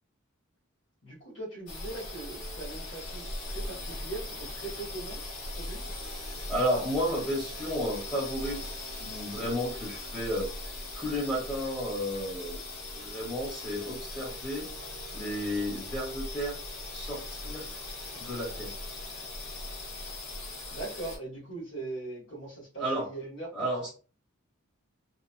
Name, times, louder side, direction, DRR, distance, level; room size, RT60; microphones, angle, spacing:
voice 1, 1.0-5.2 5.6-5.9 19.9-20.1 20.7-23.9, right 2 dB, 60° left, -7 dB, 0.9 m, -41 dB
sound 1, 1.7-21.2, left 2 dB, 85° left, 1.0 m, -39 dB
voice 2, 6.5-8.6 9.0-10.5 10.9-12.6 12.9-14.7 15.1-16.6 16.9-17.6 18.1-18.7 22.8-23.1 23.5-23.9, equal, 10° left, -6 dB, 1.0 m, -32 dB
2.9 x 2.1 x 2.5 m, 0.35 s
head